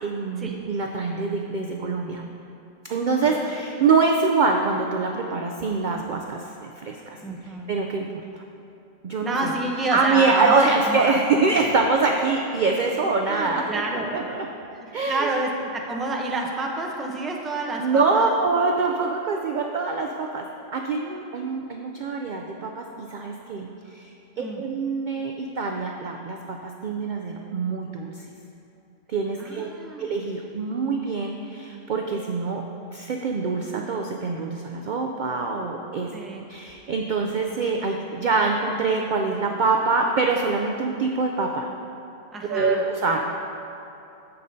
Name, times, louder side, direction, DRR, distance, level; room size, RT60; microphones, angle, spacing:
voice 1, 0.0-2.2 2.9-7.2 7.7-8.1 9.0-9.5 9.9-13.6 14.1-14.5 14.9-15.3 17.8-20.4 20.7-23.7 23.9-24.1 24.4-28.2 29.1-29.7 30.0-32.6 32.9-36.1 36.5-41.7 42.5-43.2, right 4 dB, 65° right, 2 dB, 0.5 m, -24 dB
voice 2, 7.2-7.7 9.2-11.1 11.5-11.7 13.2-14.2 14.7-18.3 24.4-24.6 29.4-30.1 36.1-36.4 42.3-42.8, right 2 dB, ahead, 0 dB, 0.4 m, -29 dB
15.0 x 5.6 x 2.7 m, 2.8 s
omnidirectional pair, 1.3 m